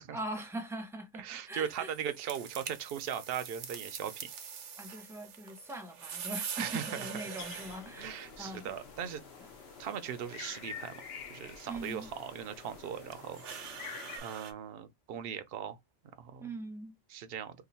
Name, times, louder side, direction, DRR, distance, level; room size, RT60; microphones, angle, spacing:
voice 1, 0.1-1.9 4.8-8.7 11.7-12.1 16.4-17.0, right 1 dB, 5° right, 0.6 m, -41 dB
voice 2, 1.2-4.3 6.6-7.3 8.0-9.2 9.8-10.9 11.3-13.4 14.2-15.8 16.2-16.5 17.1-17.5, right 8 dB, 60° right, 0.7 m, -39 dB
sound 1, 1.5-14.5, right 7 dB, 80° right, 1.1 m, -46 dB
sound 2, 7.4-14.2, left 6 dB, 65° left, 0.9 m, -48 dB
2.9 x 2.5 x 3.9 m
omnidirectional pair, 1.2 m